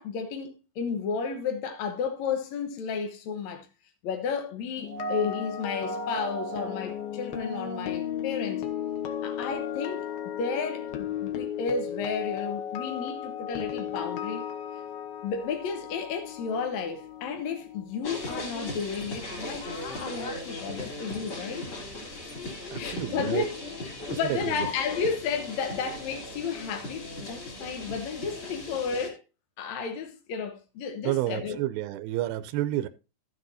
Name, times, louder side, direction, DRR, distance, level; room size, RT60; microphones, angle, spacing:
voice 1, 0.0-3.7 4.0-8.7 9.2-10.1 10.4-14.5 15.2-21.7 22.7-29.2 29.6-31.6, left 6 dB, 70° left, 1.8 m, -32 dB
sound 1, 4.8-18.8 19.1-19.4, left 9 dB, 85° left, 3.0 m, -35 dB
sound 2, 4.8-8.1 9.5-9.6, right 5 dB, 60° right, 1.7 m, -38 dB
sound 3, 18.0-29.1, left 2 dB, 35° left, 3.7 m, -38 dB
voice 2, 22.7-23.4 24.1-24.7 31.0-32.9, right 14 dB, 85° right, 2.5 m, -30 dB
13.0 x 8.3 x 2.7 m
omnidirectional pair, 4.2 m